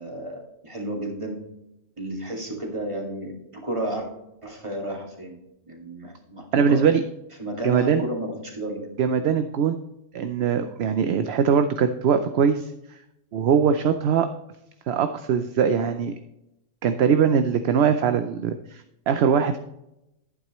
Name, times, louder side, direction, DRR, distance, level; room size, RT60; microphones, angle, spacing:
voice 1, 0.0-1.4 2.0-4.1 4.4-5.4 5.7-6.9 7.4-8.9, right 1 dB, 25° right, 0 dB, 2.2 m, -32 dB
voice 2, 6.5-7.0 7.6-8.0 9.0-9.8 10.1-12.7 13.3-14.3 14.9-16.1 16.8-19.6, right 7 dB, 60° right, 9 dB, 0.8 m, -21 dB
11.0 x 9.1 x 3.0 m, 0.87 s
omnidirectional pair, 1.4 m